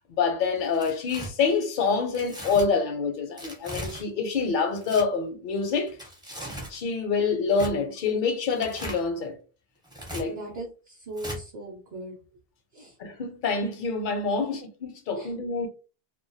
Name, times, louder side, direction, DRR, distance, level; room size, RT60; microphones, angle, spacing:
voice 1, 0.2-6.0 6.7-9.3 10.1-10.4 13.0-15.7, left 5 dB, 60° left, 0.6 m, -26 dB
Tearing, 0.6-1.3 2.1-2.7 3.4-4.0 4.7-5.0 5.9-6.8 7.5-7.7 8.5-9.0 9.8-10.2 11.2-11.4, right 1 dB, 5° right, 0.4 m, -38 dB
voice 2, 10.2-12.2 12.7-12.9 15.2-15.3, right 1 dB, 50° right, 0.6 m, -38 dB
2.2 x 2.2 x 2.6 m
omnidirectional pair, 1.1 m